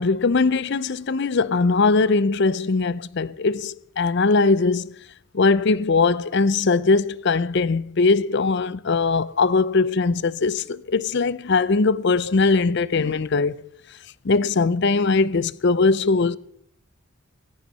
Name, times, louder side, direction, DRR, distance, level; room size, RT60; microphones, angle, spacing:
voice 1, 0.0-5.0 5.3-13.6 14.2-16.4, left 4 dB, 50° left, 0.6 m, -20 dB
17.0 x 14.5 x 5.5 m
head